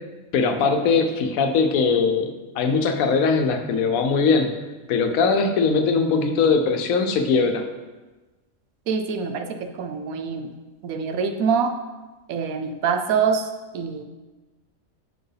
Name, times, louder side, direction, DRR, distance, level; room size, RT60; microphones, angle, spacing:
voice 1, 0.3-4.5 4.9-7.6, left 4 dB, 85° left, 6 dB, 1.0 m, -20 dB
voice 2, 8.9-10.5 10.8-11.7 12.3-13.5 13.7-14.0, right 6 dB, 85° right, 6 dB, 1.1 m, -25 dB
6.8 x 4.4 x 3.3 m, 1.2 s
omnidirectional pair, 1.4 m